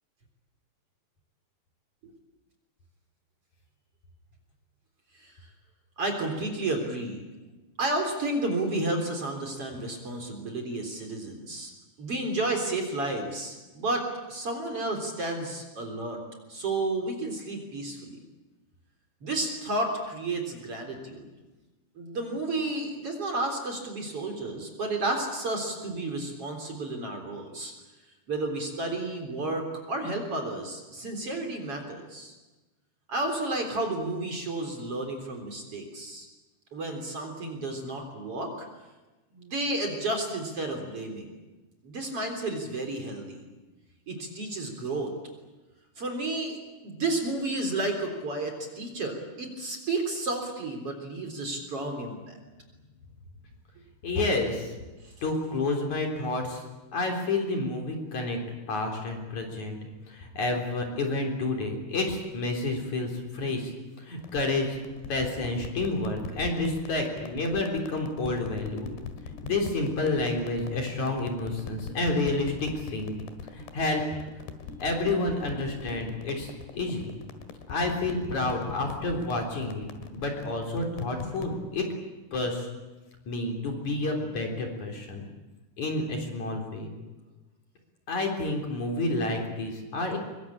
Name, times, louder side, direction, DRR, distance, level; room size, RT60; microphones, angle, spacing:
voice 1, 6.0-7.2 7.8-11.7 12.0-16.2 16.5-18.2 19.2-21.3 22.0-27.7 28.3-32.3 33.1-36.3 36.7-38.7 39.3-41.3 41.8-43.4 44.1-45.1 46.0-46.6 46.8-52.3 55.0-55.1, right 2 dB, 35° right, 4 dB, 4.4 m, -32 dB
voice 2, 54.0-54.8 55.2-56.6 56.9-58.4 58.7-59.8 60.1-63.7 64.0-64.8 65.1-68.9 69.3-73.2 73.5-74.0 74.8-77.2 77.7-79.9 80.1-81.9 82.3-82.7 83.3-85.2 85.8-86.9 88.1-90.2, left 2 dB, 45° left, 2 dB, 4.8 m, -29 dB
sound 1, 64.2-81.6, left 5 dB, 85° left, 3.9 m, -42 dB
24.5 x 23.5 x 8.7 m, 1.1 s
omnidirectional pair, 4.7 m